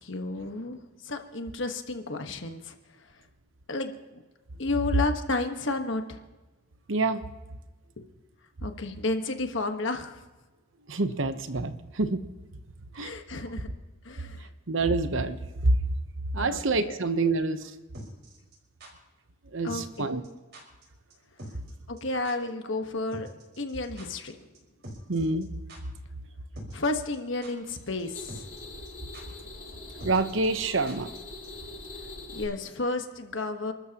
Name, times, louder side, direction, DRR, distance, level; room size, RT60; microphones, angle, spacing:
voice 1, 0.0-2.7 3.7-4.2 4.6-6.2 8.0-8.1 8.6-10.2 13.0-13.7 14.0-14.5 16.4-17.0 19.6-20.1 21.9-23.3 23.6-24.5 26.7-28.4 32.3-33.7, left 2 dB, 65° left, 6 dB, 1.4 m, -32 dB
voice 2, 6.9-7.2 10.9-12.2 12.9-13.1 14.7-15.8 16.3-17.7 19.5-20.2 25.1-25.5 30.0-31.1, right 3 dB, 70° right, 10 dB, 0.9 m, -27 dB
sound 1, 17.9-18.9 19.7-20.0 20.2-20.3 20.5-20.8 21.1-21.2 21.4-21.7 22.0-22.1 22.2-22.3 23.1-24.3 24.5-24.6 24.8-25.4 25.7-25.8 26.6-26.9 27.1-27.7 28.0-28.1 28.3-28.6 28.8-28.9 29.1-29.2 30.0-31.2 31.4-31.5, equal, 50° right, 5.0 m, -44 dB
sound 2, 27.6-32.4, left 2 dB, 45° left, 5.4 m, -43 dB
29.0 x 13.0 x 3.0 m, 1.2 s
head